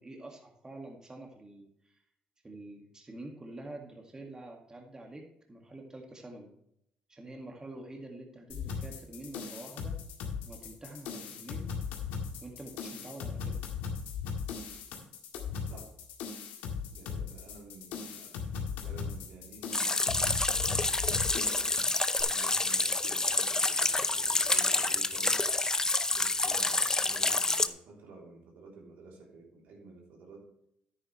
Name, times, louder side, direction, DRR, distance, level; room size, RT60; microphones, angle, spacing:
voice 1, 0.0-2.0 2.4-6.5 7.1-10.0 10.4-11.7 12.4-13.6, right 2 dB, 25° right, 1 dB, 2.1 m, -47 dB
sound 1, 8.5-22.2, left 6 dB, 90° left, 1.9 m, -38 dB
voice 2, 15.6-15.9 16.9-20.1 20.7-21.8 22.2-25.5 26.1-30.5, right 3 dB, 80° right, -1 dB, 3.3 m, -52 dB
sound 2, 19.7-27.7, left 2 dB, 20° left, 0.7 m, -28 dB
10.0 x 9.3 x 3.3 m, 0.74 s
supercardioid pair, 75°, 3 cm